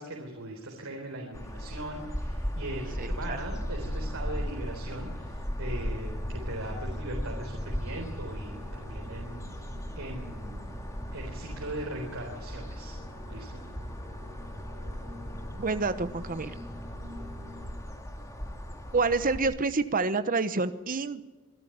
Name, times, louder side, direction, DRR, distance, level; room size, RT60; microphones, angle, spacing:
voice 1, 0.0-9.4 9.9-10.8 11.1-13.0 13.3-13.6, right 1 dB, 90° right, 1 dB, 3.9 m, -39 dB
sound 1, 1.3-19.4, equal, 15° left, 2.7 m, -37 dB
voice 2, 3.0-3.4 15.6-16.5 18.9-21.2, right 3 dB, 40° right, 11 dB, 1.0 m, -28 dB
sound 2, 3.8-17.7, equal, 20° right, 5.2 m, -46 dB
25.5 x 12.5 x 10.0 m, 1.2 s
head